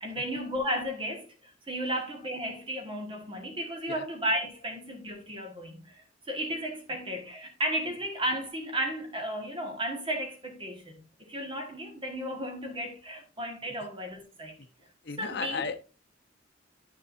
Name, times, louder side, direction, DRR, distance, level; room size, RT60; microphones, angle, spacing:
voice 1, 0.0-14.6 15.2-15.6, equal, 25° right, 1.5 m, -34 dB
voice 2, 15.0-15.8, left 5 dB, 60° left, 0.8 m, -34 dB
9.7 x 7.0 x 2.5 m
head